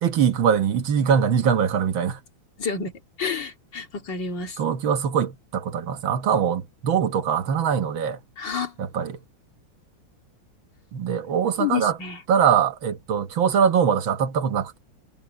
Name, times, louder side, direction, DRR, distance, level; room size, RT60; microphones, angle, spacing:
voice 1, 0.0-2.2 4.6-8.2 8.8-9.2 10.9-12.0 12.3-14.8, right 7 dB, 75° right, 2.0 m, -22 dB
voice 2, 2.6-2.9 3.2-4.6 8.4-8.7 11.6-12.2, left 6 dB, 60° left, 3.0 m, -29 dB
omnidirectional pair, 2.2 m